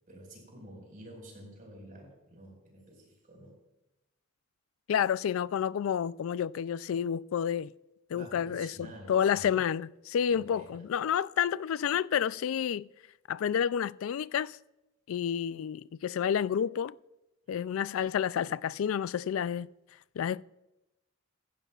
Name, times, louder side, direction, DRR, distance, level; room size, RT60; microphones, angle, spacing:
voice 1, 0.1-3.6 8.1-9.6 10.3-10.9, right 1 dB, 45° right, 4.9 m, -49 dB
voice 2, 4.9-7.7 8.1-12.9 13.3-14.6 15.1-16.9 17.5-19.7 20.2-20.4, left 8 dB, 80° left, 0.3 m, -30 dB
15.5 x 15.5 x 2.4 m
head